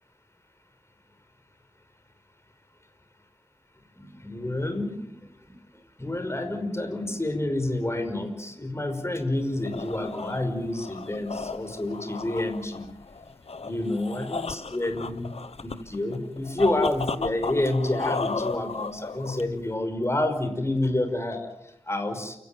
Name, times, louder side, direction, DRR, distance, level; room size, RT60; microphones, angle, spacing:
sound 1, 4.0-11.6, equal, 10° right, 5.2 m, -52 dB
voice 1, 4.2-5.0 6.0-12.9 13.6-15.3 15.6-22.4, left 1 dB, 25° left, 7 dB, 5.6 m, -28 dB
sound 2, 9.4-19.7, left 4 dB, 75° left, 1.0 m, -35 dB
29.0 x 17.0 x 9.3 m, 0.86 s
wide cardioid pair, 80°, 11 cm